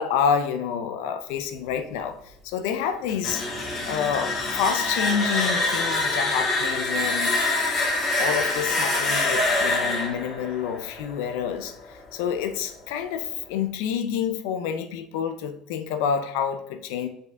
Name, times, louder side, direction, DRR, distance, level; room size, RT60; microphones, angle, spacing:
voice 1, 0.0-3.4 3.9-7.6 8.2-17.1, left 7 dB, 85° left, 9 dB, 0.7 m, -28 dB
sound 1, 3.1-11.9, left 2 dB, 45° left, 1.8 m, -25 dB
6.4 x 4.2 x 3.6 m, 0.78 s
supercardioid pair, 115°, 0 cm